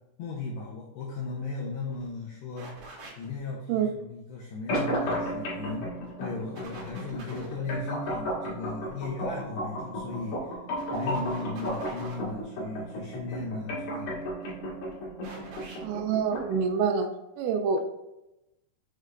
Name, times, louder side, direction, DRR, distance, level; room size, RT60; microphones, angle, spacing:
voice 1, 0.2-5.9 6.2-10.6 10.9-14.2, left 4 dB, 75° left, -3 dB, 2.6 m, -36 dB
sound 1, 1.6-1.7 1.9-2.1 2.6-3.4 5.5-6.1 6.6-7.6 9.8-10.1 10.8-12.3 14.0-14.5 15.2-15.9, right 2 dB, 50° right, 2.2 m, -46 dB
sound 2, 4.7-16.7, equal, 60° left, 2.8 m, -34 dB
voice 2, 15.8-17.1 17.4-17.8, right 6 dB, 90° right, 6 dB, 3.2 m, -26 dB
6.6 x 6.4 x 2.5 m, 0.93 s
omnidirectional pair, 5.7 m